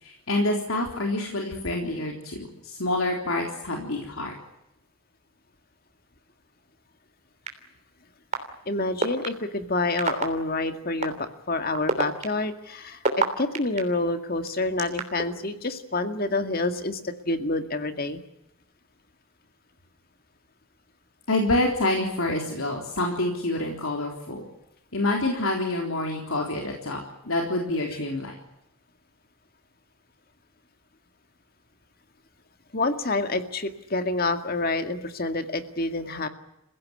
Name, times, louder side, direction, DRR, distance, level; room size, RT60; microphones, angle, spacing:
voice 1, 0.0-4.3 21.3-24.4 24.9-27.0 27.2-28.4, left 2 dB, 80° left, 1 dB, 3.8 m, -27 dB
sound 1, 7.5-7.6 8.3-8.4 9.0-9.3 10.0-10.2 11.0-11.1 11.7-13.8 14.5-15.2, right 3 dB, 35° right, 3.3 m, -24 dB
voice 2, 8.7-18.2 32.7-36.3, left 2 dB, 45° left, 8 dB, 2.1 m, -28 dB
28.5 x 16.5 x 9.6 m, 0.88 s
head